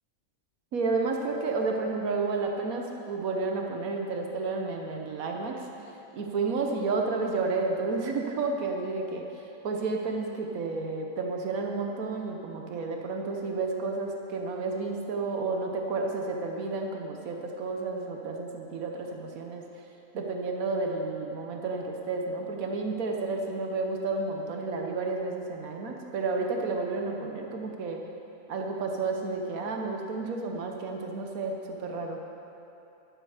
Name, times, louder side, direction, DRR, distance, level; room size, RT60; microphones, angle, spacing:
voice 1, 0.7-5.7 6.1-19.8 20.1-28.0 28.5-32.2, right 3 dB, 80° right, 2 dB, 1.4 m, -31 dB
12.0 x 11.5 x 4.9 m, 2.9 s
omnidirectional pair, 1.5 m